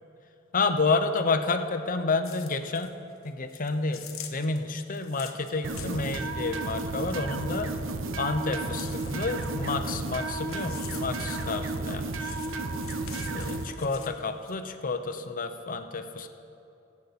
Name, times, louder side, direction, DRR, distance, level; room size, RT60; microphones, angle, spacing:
voice 1, 0.5-3.0 3.2-7.7 8.2-12.3 13.3-16.3, left 3 dB, 40° left, 8 dB, 0.7 m, -30 dB
sound 1, 2.2-2.9 3.2-8.2 8.4-11.9 12.2-14.5, left 9 dB, 80° left, 1.1 m, -46 dB
sound 2, 5.6-13.6, right 2 dB, 65° right, 0.8 m, -33 dB
22.5 x 8.4 x 4.2 m, 2.7 s
head